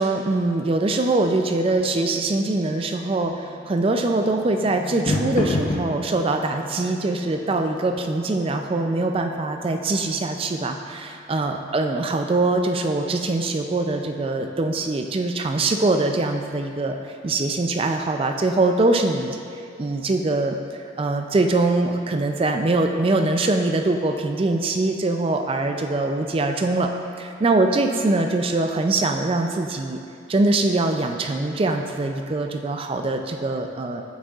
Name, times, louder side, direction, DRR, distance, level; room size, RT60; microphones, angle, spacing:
voice 1, 0.0-17.0 17.2-19.4 19.8-20.6 21.0-26.9 27.2-30.0 30.3-34.0, right 2 dB, 30° right, 5 dB, 0.3 m, -23 dB
sound 1, 0.7-11.3, left 1 dB, 40° left, 0.8 m, -34 dB
8.2 x 6.3 x 2.4 m, 2.7 s
head